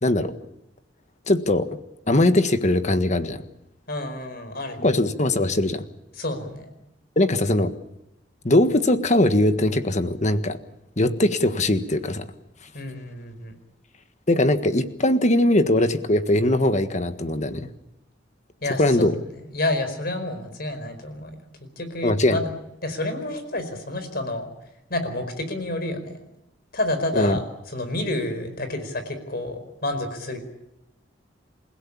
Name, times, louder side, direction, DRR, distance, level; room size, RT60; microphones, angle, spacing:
voice 1, 0.0-0.3 1.3-1.7 2.1-3.4 4.8-5.8 7.2-7.7 8.4-10.6 11.0-12.2 14.3-17.7 18.8-19.1 22.0-22.4 27.2-27.4, left 1 dB, 40° left, 10 dB, 1.5 m, -20 dB
voice 2, 3.9-5.0 6.1-6.7 12.7-13.6 18.6-19.1 19.5-22.5 22.8-24.5 24.9-26.2 26.7-30.4, left 1 dB, 55° left, 8 dB, 4.9 m, -29 dB
29.0 x 16.5 x 8.7 m, 0.89 s
head